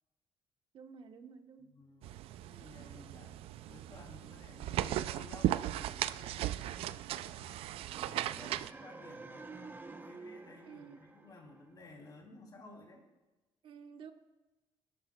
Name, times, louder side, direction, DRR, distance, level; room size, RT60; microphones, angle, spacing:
voice 1, 0.7-1.7 10.7-11.0 13.6-14.1, right 6 dB, 65° right, 6 dB, 1.2 m, -51 dB
voice 2, 1.6-3.4 3.7-7.7 8.0-9.7 10.0-13.1, left 2 dB, 45° left, 0 dB, 3.0 m, -55 dB
sound 1, 2.0-8.7, right 13 dB, 85° right, 0.4 m, -37 dB
sound 2, 7.8-11.9, right 3 dB, 20° right, 0.8 m, -50 dB
20.0 x 12.5 x 2.3 m, 1.1 s
cardioid pair, 110°, 10 cm